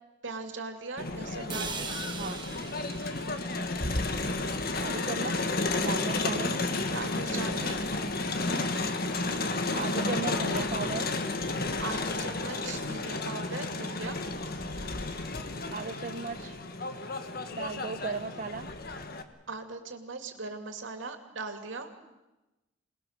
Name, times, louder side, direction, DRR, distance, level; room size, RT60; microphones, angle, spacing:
voice 1, 0.2-2.0 6.9-7.8 11.8-14.2 19.5-21.9, right 3 dB, 80° right, 6 dB, 2.6 m, -39 dB
Crowd, 1.0-19.2, left 2 dB, 50° left, 1.6 m, -32 dB
sound 1, 1.5-5.5, right 5 dB, 25° right, 1.5 m, -42 dB
voice 2, 4.8-5.5 5.8-6.6 9.7-11.1 15.7-16.6 17.5-18.7, right 4 dB, 45° right, 6 dB, 0.7 m, -36 dB
27.5 x 20.0 x 6.6 m, 1.0 s
head